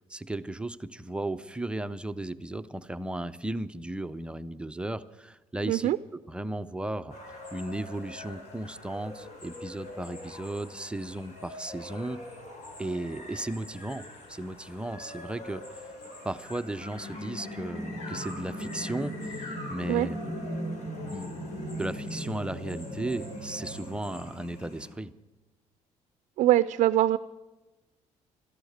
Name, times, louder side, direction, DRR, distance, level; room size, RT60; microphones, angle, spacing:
voice 1, 0.1-5.9 6.3-7.2 7.5-12.2 12.8-15.8 16.2-20.2 21.1-21.5 21.8-25.1, right 1 dB, 10° right, 12 dB, 0.4 m, -35 dB
sound 1, 7.1-24.9, equal, 70° left, 3.7 m, -40 dB
voice 2, 26.4-27.2, right 13 dB, 70° right, 14 dB, 0.4 m, -22 dB
13.5 x 12.0 x 7.8 m, 1.1 s
cardioid pair, 135°, 13 cm